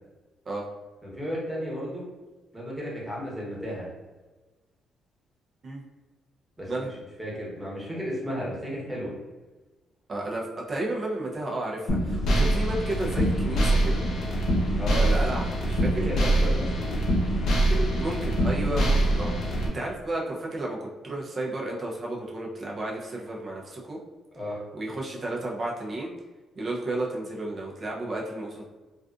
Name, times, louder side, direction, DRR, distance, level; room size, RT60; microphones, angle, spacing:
voice 1, 1.0-2.0 2.5-3.9 6.6-6.9 7.2-9.1 14.8-15.1 16.0-16.9 24.3-24.6, equal, 5° right, -5 dB, 1.0 m, -33 dB
voice 2, 10.1-14.0 15.0-16.1 18.0-24.0 24.7-26.1 26.6-28.7, right 2 dB, 40° right, -2 dB, 0.6 m, -32 dB
sound 1, 11.9-19.7, right 1 dB, 65° left, 0.8 m, -24 dB
2.4 x 2.4 x 2.4 m, 1.2 s
cardioid pair, 90°, 0 cm